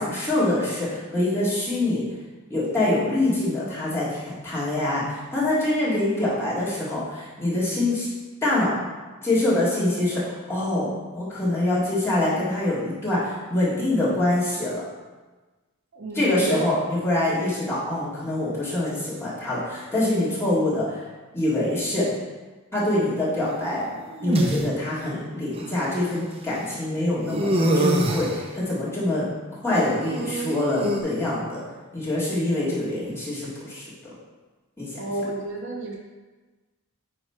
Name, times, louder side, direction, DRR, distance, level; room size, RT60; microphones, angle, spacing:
voice 1, 0.0-2.0 2.5-8.1 8.4-8.8 9.2-10.9 11.1-14.8 16.1-21.0 21.3-22.1 22.7-23.8 24.2-29.2 29.6-31.6 31.9-33.8 34.8-35.0, left 1 dB, 10° left, -10 dB, 2.0 m, -25 dB
voice 2, 15.9-16.7 35.0-36.0, right 2 dB, 55° right, -1 dB, 0.9 m, -30 dB
sound 1, 23.4-24.6 25.6-25.7 27.3-28.4 29.7-31.0, right 1 dB, 25° right, 0.5 m, -25 dB
9.4 x 3.2 x 4.4 m, 1.3 s
head